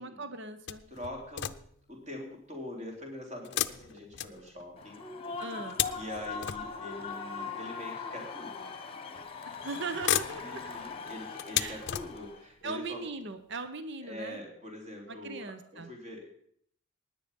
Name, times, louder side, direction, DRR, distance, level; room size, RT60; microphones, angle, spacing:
voice 1, 0.0-0.8 5.4-5.8 9.6-10.6 11.6-11.8 12.6-14.4 15.1-15.9, right 3 dB, 55° right, 10 dB, 1.0 m, -39 dB
sound 1, 0.7-1.9 3.4-4.9 5.4-7.1 8.0-8.1 9.2-9.6 9.9-12.5 13.2-13.3 13.6-13.7, left 11 dB, 55° left, 0.6 m, -35 dB
voice 2, 0.9-1.6 1.9-5.0 5.9-8.7 10.4-13.0 14.0-16.3, left 1 dB, 35° right, 1 dB, 3.3 m, -43 dB
Human voice / Cheering / Applause, 4.8-12.4, left 5 dB, 25° left, 1.1 m, -41 dB
17.0 x 10.0 x 5.4 m, 0.64 s
head